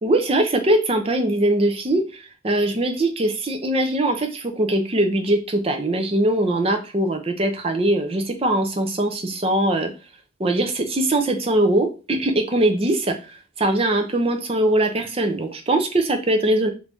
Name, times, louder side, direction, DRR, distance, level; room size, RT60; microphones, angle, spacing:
voice 1, 0.0-9.9 10.4-16.7, right 1 dB, 30° right, 5 dB, 0.5 m, -21 dB
3.1 x 2.6 x 3.4 m, 0.32 s
head